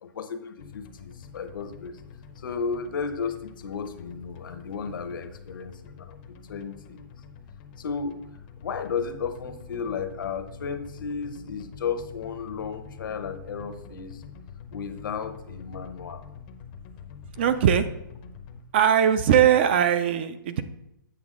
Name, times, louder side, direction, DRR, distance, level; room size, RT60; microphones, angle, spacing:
voice 1, 0.0-2.0 2.4-7.1 7.8-8.2 8.6-14.2 14.7-16.3, left 5 dB, 70° left, 9 dB, 0.8 m, -34 dB
sound 1, 0.6-18.6, left 6 dB, 25° left, 0.5 m, -45 dB
voice 2, 17.4-17.9 18.7-20.6, right 9 dB, 30° right, 12 dB, 0.3 m, -20 dB
8.0 x 6.0 x 3.7 m, 0.85 s
hypercardioid pair, 165°, 11 cm